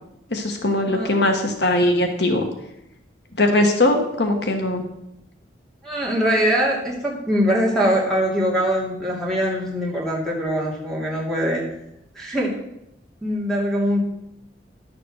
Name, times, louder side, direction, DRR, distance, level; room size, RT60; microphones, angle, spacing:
voice 1, 0.3-2.4 3.4-4.8, left 1 dB, 70° left, 4 dB, 1.3 m, -20 dB
voice 2, 5.8-11.6 12.2-12.5 13.2-14.0, equal, 5° left, -3 dB, 2.6 m, -22 dB
11.0 x 6.9 x 6.3 m, 0.85 s
head